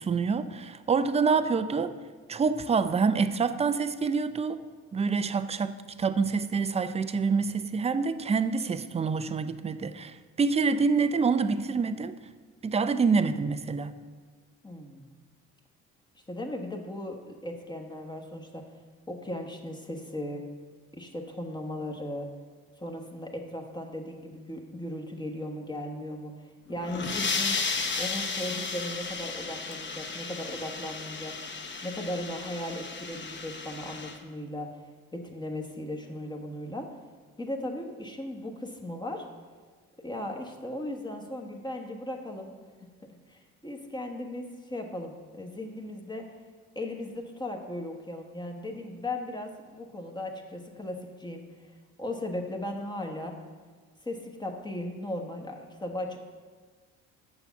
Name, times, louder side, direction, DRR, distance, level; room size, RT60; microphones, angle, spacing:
voice 1, 0.0-1.9 2.3-4.6 4.9-12.2 12.6-13.9, right 5 dB, 20° right, 12 dB, 0.4 m, -26 dB
voice 2, 14.6-15.1 16.3-18.6 19.1-20.4 20.9-22.3 22.8-27.6 28.0-31.3 31.8-34.7 35.1-36.9 37.4-39.3 40.0-42.5 43.3-46.2 46.7-51.4 52.0-53.3 54.0-56.2, left 1 dB, 15° left, 2 dB, 1.2 m, -37 dB
sound 1, 26.7-34.2, left 4 dB, 35° left, 1.0 m, -34 dB
6.8 x 5.7 x 7.0 m, 1.5 s
cardioid pair, 90°, 33 cm